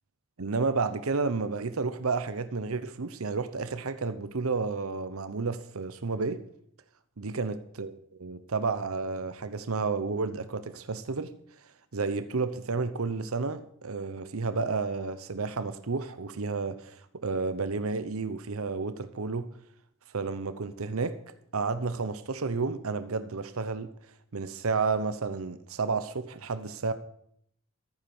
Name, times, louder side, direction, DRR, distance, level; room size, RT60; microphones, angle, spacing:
voice 1, 0.4-6.4 7.2-7.9 8.2-11.3 11.9-19.5 20.1-23.9 24.3-26.9, right 4 dB, 85° right, 0.8 m, -31 dB
14.0 x 9.5 x 7.1 m
head